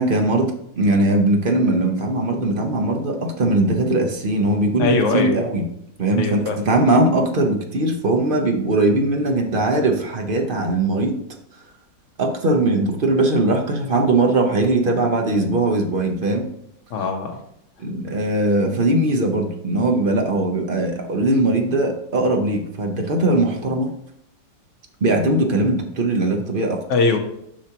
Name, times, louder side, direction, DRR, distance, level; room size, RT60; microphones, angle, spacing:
voice 1, 0.0-5.6 6.0-11.2 12.2-16.5 17.8-23.9 25.0-26.8, right 2 dB, 45° right, 3 dB, 0.6 m, -20 dB
voice 2, 4.8-5.4 6.2-6.6 16.9-17.4 26.9-27.2, left 4 dB, 45° left, 4 dB, 1.1 m, -21 dB
7.2 x 5.7 x 2.9 m, 0.77 s
omnidirectional pair, 2.1 m